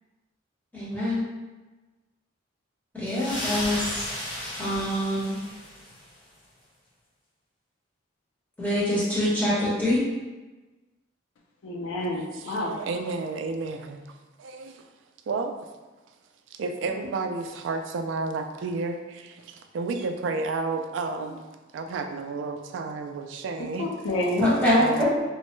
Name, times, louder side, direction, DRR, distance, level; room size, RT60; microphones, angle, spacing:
voice 1, 0.7-1.2 2.9-4.1 4.6-5.4 8.6-10.0 24.4-25.0, left 1 dB, 10° left, -9 dB, 1.0 m, -24 dB
sound 1, 3.1-6.1, left 1 dB, 60° left, 0.9 m, -34 dB
voice 2, 11.6-12.8 23.6-24.5, left 1 dB, 85° left, -1 dB, 0.4 m, -29 dB
voice 3, 12.3-14.0 14.4-14.9 15.3-15.6 16.5-21.4 21.7-23.9 24.8-25.0, right 3 dB, 70° right, 6 dB, 0.3 m, -31 dB
3.1 x 2.1 x 3.0 m, 1.2 s
head